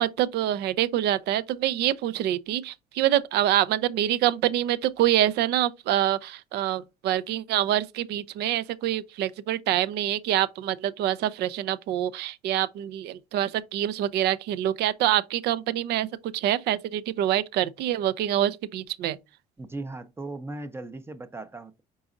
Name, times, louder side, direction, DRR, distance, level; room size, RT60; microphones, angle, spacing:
voice 1, 0.0-16.1 16.3-19.2, right 12 dB, 70° right, 0.5 m, -26 dB
voice 2, 19.6-21.8, right 2 dB, 15° right, 0.5 m, -37 dB
4.7 x 4.0 x 2.5 m
cardioid pair, 110°, 17 cm